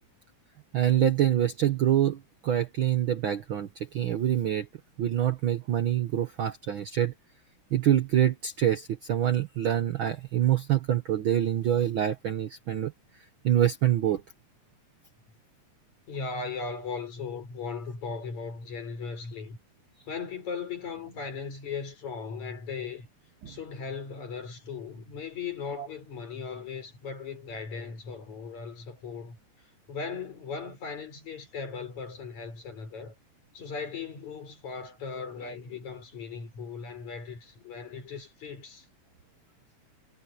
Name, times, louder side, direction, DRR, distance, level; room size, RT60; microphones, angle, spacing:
voice 1, 0.7-4.7 5.0-7.1 7.7-12.9 13.4-14.2 23.4-23.5 25.8-25.9, right 11 dB, 65° right, 1.3 m, -26 dB
voice 2, 16.1-19.6 20.1-23.1 23.5-29.4 29.9-33.1 33.5-38.9, left 5 dB, 70° left, 6.5 m, -38 dB
omnidirectional pair, 3.4 m